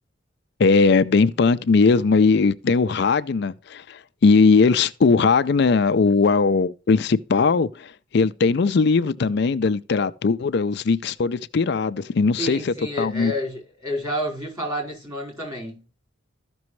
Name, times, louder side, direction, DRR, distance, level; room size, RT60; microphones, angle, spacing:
voice 1, 0.6-13.3, left 4 dB, 55° left, 0.4 m, -19 dB
voice 2, 12.4-15.8, equal, 15° right, 4.5 m, -30 dB
13.5 x 6.1 x 3.1 m
head